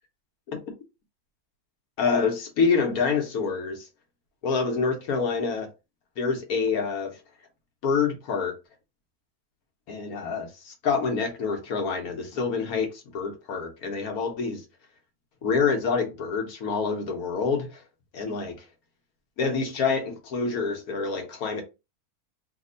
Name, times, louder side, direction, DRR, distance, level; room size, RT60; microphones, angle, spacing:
voice 1, 2.0-3.9 4.4-5.7 6.2-7.2 7.8-8.5 9.9-14.6 15.4-17.8 18.1-18.6 19.4-21.6, left 5 dB, 75° left, 1.3 m, -27 dB
3.4 x 2.1 x 3.8 m
omnidirectional pair, 1.6 m